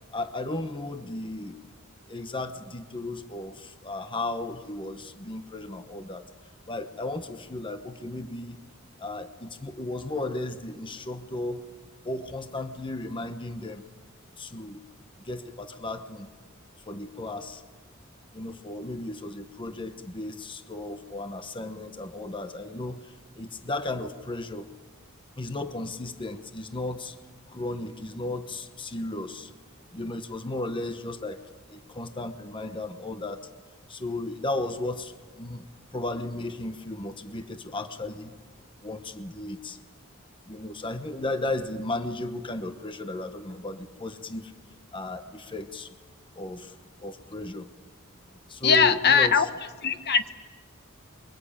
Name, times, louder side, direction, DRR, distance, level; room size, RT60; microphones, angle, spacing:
voice 1, 0.1-1.6 2.1-6.2 6.7-8.6 9.0-11.6 12.0-13.8 14.4-14.8 15.2-16.3 16.9-17.6 18.3-24.7 25.4-27.2 27.5-29.5 29.9-31.4 31.7-33.5 33.9-35.6 35.9-38.3 38.8-39.8 40.4-44.5 44.9-45.9 46.3-46.7 47.0-47.7 48.5-49.5, left 2 dB, 25° left, 8 dB, 1.0 m, -35 dB
voice 2, 48.6-49.4 49.8-50.3, left 6 dB, 50° left, 9 dB, 1.2 m, -20 dB
28.5 x 23.0 x 8.7 m, 1.5 s
head